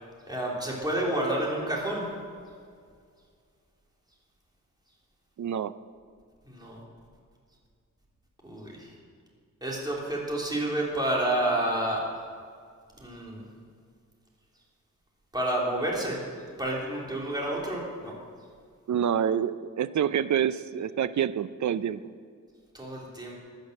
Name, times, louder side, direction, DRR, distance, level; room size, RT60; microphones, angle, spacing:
voice 1, 0.3-2.0 6.5-6.8 8.4-8.9 9.6-12.0 13.0-13.4 15.3-16.2 16.6-18.1 22.7-23.3, right 1 dB, 10° right, -4 dB, 3.2 m, -29 dB
voice 2, 5.4-5.7 18.9-22.0, right 9 dB, 60° right, 14 dB, 0.5 m, -27 dB
16.0 x 9.9 x 6.6 m, 2.1 s
wide cardioid pair, 150°, 33 cm